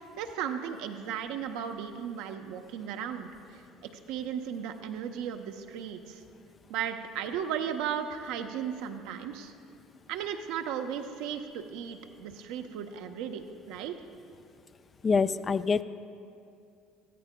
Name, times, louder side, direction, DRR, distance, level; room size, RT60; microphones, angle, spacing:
voice 1, 0.2-6.2 6.7-9.5 10.1-13.9, right 8 dB, 70° right, 6 dB, 0.7 m, -36 dB
voice 2, 15.0-15.8, left 5 dB, 35° left, 13 dB, 0.4 m, -25 dB
16.0 x 13.5 x 2.2 m, 2.4 s
hypercardioid pair, 70°, 0 cm